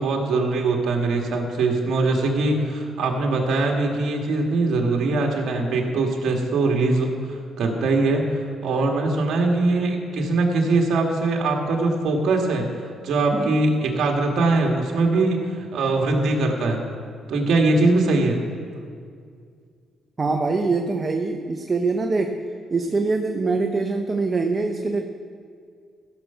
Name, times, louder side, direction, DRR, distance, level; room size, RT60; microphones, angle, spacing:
voice 1, 0.0-12.7 13.0-16.8 17.3-18.4, right 3 dB, 70° right, 1 dB, 1.9 m, -22 dB
voice 2, 20.2-22.4 22.7-25.0, right 3 dB, 35° right, 4 dB, 0.8 m, -24 dB
15.5 x 6.9 x 5.7 m, 2.2 s
cardioid pair, 90°, 0 cm